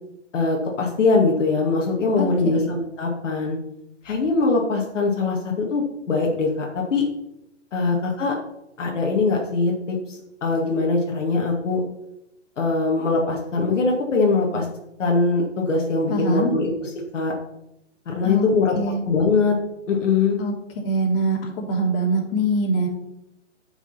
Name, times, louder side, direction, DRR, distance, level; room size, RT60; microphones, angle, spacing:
voice 1, 0.3-3.6 4.0-7.1 7.7-8.4 8.8-11.8 12.6-14.7 15.0-17.3 18.1-18.8 19.0-19.6 19.9-20.4, left 3 dB, 80° left, -1 dB, 2.2 m, -22 dB
voice 2, 2.2-2.7 7.9-8.0 16.1-16.5 18.2-18.5 18.7-19.0 20.4-20.5 20.8-22.9, right 2 dB, 50° left, 0 dB, 3.1 m, -23 dB
9.7 x 5.9 x 5.8 m, 0.86 s
hypercardioid pair, 135°, 37 cm